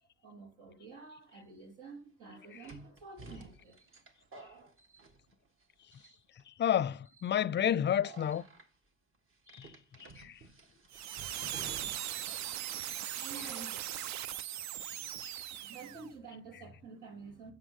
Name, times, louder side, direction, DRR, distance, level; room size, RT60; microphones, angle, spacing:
voice 1, 0.2-3.8 13.0-14.1 14.5-17.5, right 4 dB, 85° right, 3.7 m, -50 dB
sound 1, 1.3-1.4 2.6-5.6 5.9-6.4 7.0-7.3 8.0-8.7 9.5-12.2 12.5-12.6 13.8-14.1, right 3 dB, 45° right, 1.5 m, -52 dB
voice 2, 6.6-8.4 9.5-9.7 10.2-10.3, left 9 dB, 35° left, 0.5 m, -30 dB
sound 2, 10.9-16.1, right 12 dB, 65° right, 0.4 m, -39 dB
8.5 x 7.2 x 6.4 m
cardioid pair, 90°, 30 cm